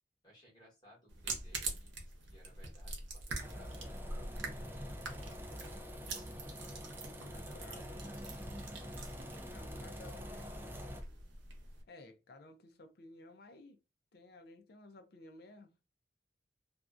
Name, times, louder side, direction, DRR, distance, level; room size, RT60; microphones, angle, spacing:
voice 1, 0.2-4.4 5.1-5.8 7.3-8.7 9.7-10.8, right 1 dB, 25° left, 1.1 m, -63 dB
sound 1, 1.1-11.8, right 3 dB, 90° right, 0.7 m, -45 dB
sound 2, 3.4-11.0, equal, 10° right, 0.3 m, -46 dB
voice 2, 7.2-8.0 9.5-10.5 11.9-13.8 14.1-15.7, left 2 dB, 60° left, 0.4 m, -55 dB
2.4 x 2.1 x 2.4 m
head